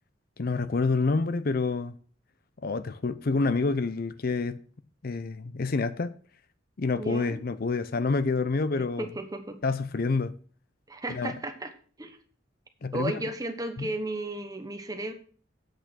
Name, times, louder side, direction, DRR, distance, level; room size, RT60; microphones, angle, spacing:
voice 1, 0.4-1.9 2.6-4.6 5.0-6.1 6.8-9.1 9.6-10.3 11.1-11.3 12.8-13.2 13.8-13.9, left 3 dB, 50° left, 0.5 m, -28 dB
voice 2, 7.0-7.4 9.0-9.6 10.9-11.7 12.0-12.2 12.9-15.1, right 2 dB, 20° right, 1.1 m, -34 dB
8.1 x 6.4 x 6.2 m
head